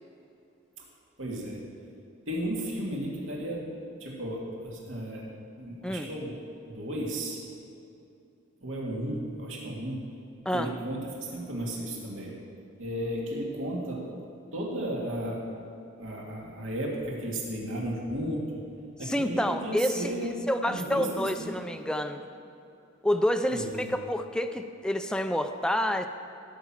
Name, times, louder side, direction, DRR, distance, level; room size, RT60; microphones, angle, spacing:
voice 1, 1.2-1.6 2.3-3.7 4.0-5.3 5.6-6.4 6.7-7.4 8.6-10.0 10.5-12.3 12.8-14.1 14.5-15.5 16.0-18.6 19.0-21.5 23.5-23.9, right 1 dB, 75° right, -3 dB, 2.2 m, -34 dB
voice 2, 19.0-20.1 20.5-22.2 23.0-26.1, equal, 5° left, 7 dB, 0.4 m, -28 dB
16.5 x 5.9 x 7.4 m, 2.7 s
head